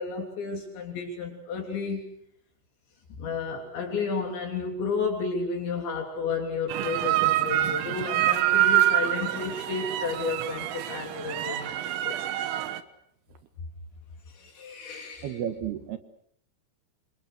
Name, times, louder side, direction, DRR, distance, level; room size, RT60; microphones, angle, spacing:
voice 1, 0.0-2.0 3.2-12.5 14.3-15.4, left 4 dB, 65° left, 2 dB, 5.4 m, -32 dB
sound 1, 6.7-12.8, right 13 dB, 85° right, 3.9 m, -26 dB
voice 2, 15.2-16.0, right 10 dB, 65° right, 9 dB, 3.1 m, -32 dB
27.5 x 27.5 x 6.6 m, 0.68 s
omnidirectional pair, 5.7 m